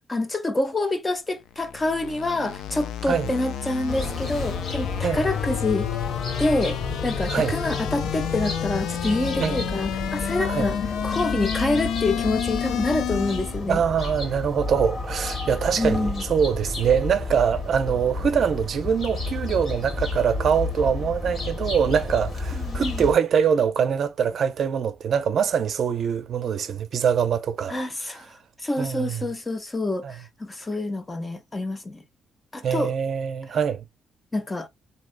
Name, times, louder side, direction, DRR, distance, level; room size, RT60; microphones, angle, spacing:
voice 1, 0.1-5.9 6.4-10.8 11.0-13.8 15.8-16.2 22.6-23.1 27.7-28.3 28.6-32.0 32.5-32.9 34.3-34.7, left 2 dB, 20° left, 0.7 m, -27 dB
sound 1, 1.4-13.7, left 9 dB, 80° left, 0.4 m, -30 dB
sound 2, 3.9-23.1, left 2 dB, 50° left, 1.5 m, -31 dB
voice 2, 13.7-27.8 28.8-29.2 30.0-30.1 32.6-33.8, right 7 dB, 60° right, 0.5 m, -23 dB
3.1 x 2.7 x 2.5 m
cardioid pair, 90°, 0 cm